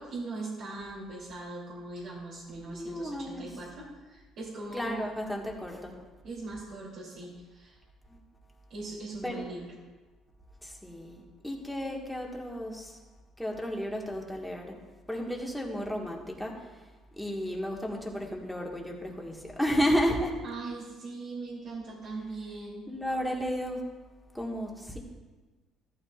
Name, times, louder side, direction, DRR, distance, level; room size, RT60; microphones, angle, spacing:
voice 1, 0.0-5.0 6.2-7.8 8.7-9.7 20.4-22.9, right 2 dB, 65° right, -6 dB, 2.9 m, -40 dB
voice 2, 2.5-3.5 4.7-6.0 8.1-8.2 9.2-9.4 10.6-13.0 13.4-14.7 15.1-16.7 17.2-20.4 22.9-23.8 24.3-25.0, equal, ahead, -1 dB, 1.7 m, -33 dB
14.0 x 12.5 x 2.4 m, 1.2 s
cardioid pair, 125°, 0 cm